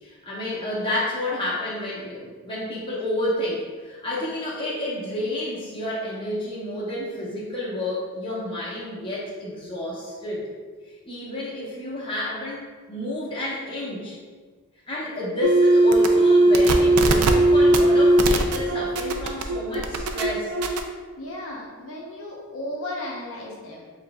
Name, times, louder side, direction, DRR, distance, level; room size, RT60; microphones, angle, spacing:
voice 1, 0.0-10.4 11.0-14.2 14.9-20.5, left 1 dB, 20° left, -7 dB, 1.0 m, -30 dB
sound 1, 15.4-20.8, right 1 dB, 85° right, 0.4 m, -18 dB
voice 2, 21.1-23.8, left 1 dB, 60° left, -3 dB, 0.7 m, -35 dB
7.4 x 2.6 x 2.2 m, 1.5 s
head